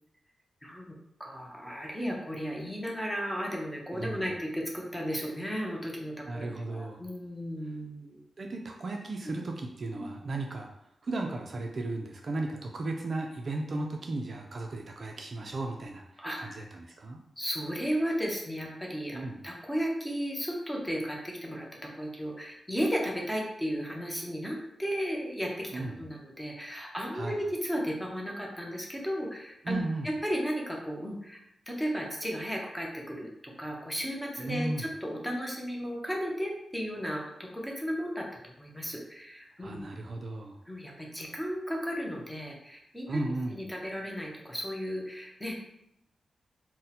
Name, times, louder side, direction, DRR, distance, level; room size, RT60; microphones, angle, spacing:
voice 1, 0.6-8.2 9.3-9.4 16.2-16.7 17.4-39.8 40.7-43.2 43.5-45.6, equal, 5° left, -1 dB, 0.5 m, -35 dB
voice 2, 3.9-4.2 6.3-7.0 8.4-10.7 11.0-17.2 19.1-19.4 25.7-26.0 27.1-27.4 29.6-30.1 34.4-34.9 39.6-40.6 43.1-43.6, right 2 dB, 40° right, 2 dB, 0.3 m, -35 dB
2.7 x 2.0 x 4.0 m, 0.80 s
wide cardioid pair, 160°, 0 cm